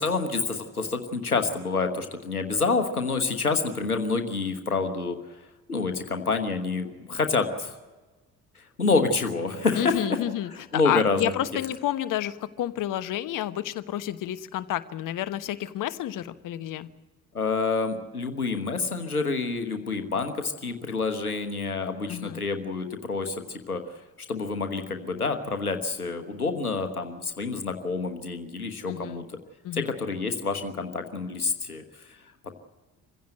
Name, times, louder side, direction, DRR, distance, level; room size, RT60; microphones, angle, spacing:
voice 1, 0.0-5.2 5.7-7.8 8.5-10.0 10.5-11.3 17.3-23.8 24.3-29.2 29.7-32.2, left 4 dB, 90° left, 7 dB, 1.3 m, -28 dB
voice 2, 9.8-16.9 22.1-22.4 28.9-29.2 29.6-29.9, left 13 dB, 45° left, 13 dB, 1.2 m, -30 dB
26.0 x 16.0 x 7.9 m, 1.2 s
figure-of-eight pair, 55°, 43 cm